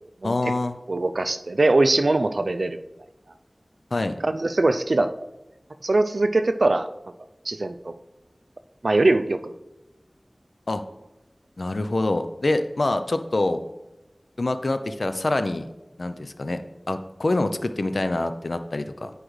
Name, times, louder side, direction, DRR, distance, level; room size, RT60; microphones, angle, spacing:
voice 1, 0.2-0.8 3.9-4.2 10.7-10.8 11.6-13.6 14.4-15.7 16.0-19.1, left 2 dB, 75° left, 9 dB, 0.4 m, -25 dB
voice 2, 0.9-2.8 4.2-5.1 5.8-6.9 7.5-7.9 8.8-9.5, right 2 dB, 75° right, 10 dB, 0.4 m, -21 dB
9.9 x 4.9 x 3.1 m, 0.99 s
wide cardioid pair, 40°, 0 cm